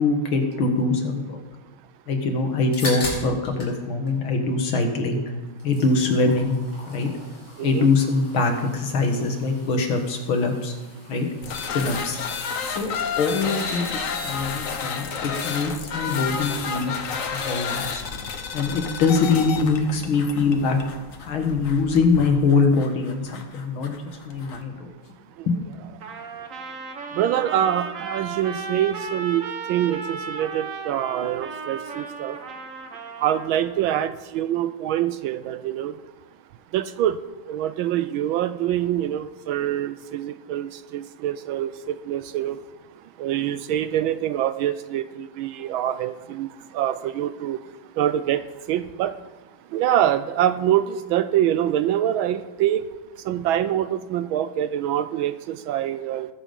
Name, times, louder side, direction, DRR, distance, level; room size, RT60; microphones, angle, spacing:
voice 1, 0.0-1.4 2.1-5.2 5.6-6.6 6.9-7.1 7.6-10.7 11.1-11.3 11.7-12.2 12.6-12.9 13.2-13.9 14.2-16.9 17.3-17.8 18.5-20.8 21.3-24.0 24.3-24.9 25.5-25.6, left 4 dB, 70° left, 4 dB, 2.3 m, -23 dB
sound 1, 2.5-3.8 4.1-5.1 5.4-20.9, left 1 dB, 85° left, 6.1 m, -42 dB
sound 2, 11.4-24.6, left 6 dB, 50° left, 1.1 m, -31 dB
Trumpet, 26.0-33.8, right 5 dB, 45° right, 1.2 m, -35 dB
voice 2, 27.2-32.4 33.2-35.9 36.7-37.2 37.5-42.6 43.2-46.5 46.7-47.6 48.0-49.1 49.7-52.8 53.3-56.3, right 11 dB, 75° right, 13 dB, 1.3 m, -25 dB
20.0 x 7.3 x 5.3 m, 1.2 s
omnidirectional pair, 2.4 m